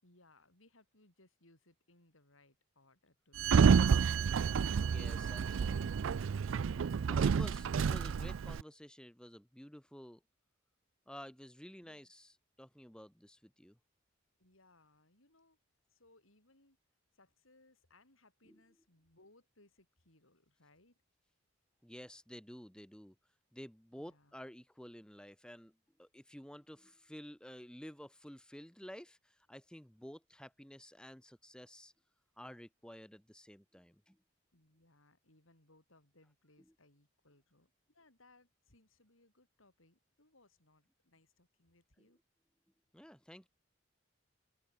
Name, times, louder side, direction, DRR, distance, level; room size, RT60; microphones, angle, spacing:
voice 1, 0.0-4.4 6.9-7.3 7.7-7.9 11.8-12.1 14.4-15.6 15.9-16.8 17.1-21.0 24.0-24.4 34.5-42.2, left 2 dB, 90° left, 6.8 m, -67 dB
Sliding door, 3.4-8.6, right 6 dB, 80° right, 0.4 m, -29 dB
voice 2, 4.8-6.1 7.1-10.2 11.1-13.8 18.5-18.6 21.8-23.1 23.5-31.9 32.4-34.2 42.9-43.5, equal, 5° left, 1.1 m, -52 dB
open air
head